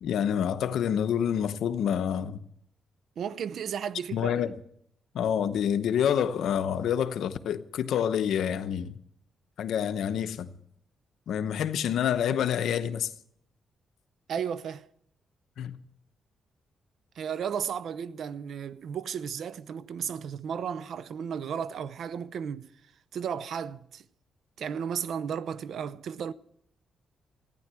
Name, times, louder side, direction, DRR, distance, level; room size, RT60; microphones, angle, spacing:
voice 1, 0.0-2.4 4.1-4.5 5.1-9.0 9.6-10.5 11.3-13.1 15.6-15.8, left 9 dB, 85° left, 0.8 m, -27 dB
voice 2, 3.2-4.3 14.3-14.9 17.2-22.7 23.1-24.0 24.6-26.3, right 7 dB, 75° right, 0.6 m, -34 dB
14.5 x 10.0 x 7.5 m
cardioid pair, 95°, 0 cm